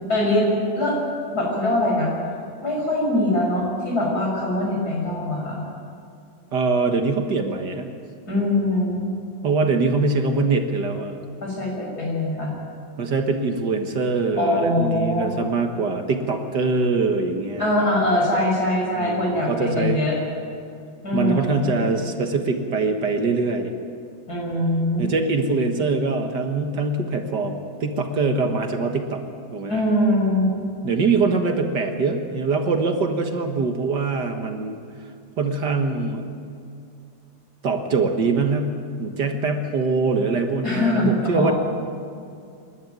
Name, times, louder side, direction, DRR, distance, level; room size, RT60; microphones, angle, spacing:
voice 1, 0.1-0.5 0.7-1.0 1.3-2.1 2.6-5.6 8.3-9.1 11.4-12.5 14.4-15.3 17.6-20.2 21.0-21.6 24.3-25.1 29.7-30.5 40.6-41.5, left 1 dB, 55° left, -2 dB, 7.0 m, -22 dB
voice 2, 6.5-7.9 9.4-11.2 13.0-17.7 18.9-20.0 21.1-23.7 25.0-29.2 29.5-29.8 30.8-34.8 35.4-36.3 37.6-41.5, right 4 dB, 65° right, 5 dB, 2.1 m, -23 dB
27.5 x 12.5 x 9.4 m, 2.4 s
omnidirectional pair, 2.0 m